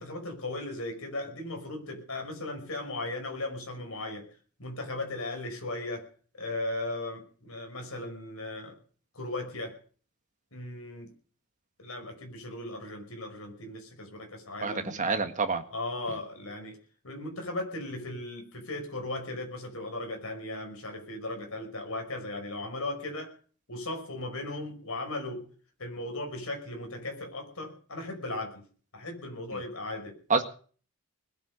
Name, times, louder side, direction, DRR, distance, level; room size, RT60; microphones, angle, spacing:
voice 1, 0.0-4.3 4.6-6.1 6.3-8.8 9.1-9.8 10.5-11.1 11.8-15.2 15.7-16.8 17.0-23.3 23.7-25.5 25.8-28.7 28.9-30.2, left 2 dB, 70° left, 4 dB, 5.6 m, -37 dB
voice 2, 14.6-15.6 30.3-30.4, right 4 dB, 35° right, 7 dB, 1.7 m, -27 dB
20.5 x 9.1 x 6.7 m, 0.43 s
head